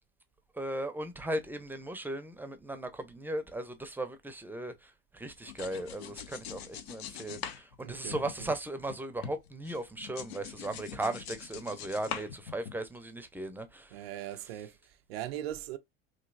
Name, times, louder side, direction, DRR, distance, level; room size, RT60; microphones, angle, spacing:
voice 1, 0.6-13.9, right 1 dB, 5° right, 0.6 m, -37 dB
sound 1, 5.3-9.0 9.2-13.0, left 9 dB, 80° left, 0.6 m, -43 dB
voice 2, 7.8-8.6 10.9-11.2 13.9-15.8, right 12 dB, 80° right, 0.5 m, -41 dB
3.1 x 2.7 x 2.5 m
hypercardioid pair, 80°, 30 cm